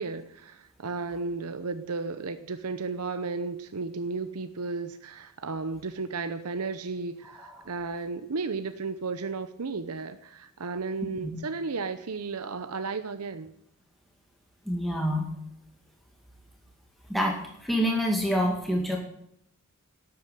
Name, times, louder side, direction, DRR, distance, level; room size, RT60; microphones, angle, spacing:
voice 1, 0.0-13.5, right 4 dB, 75° right, 10 dB, 0.8 m, -34 dB
voice 2, 14.7-15.2 17.1-19.0, equal, ahead, 0 dB, 2.0 m, -27 dB
12.5 x 8.6 x 9.3 m, 0.74 s
head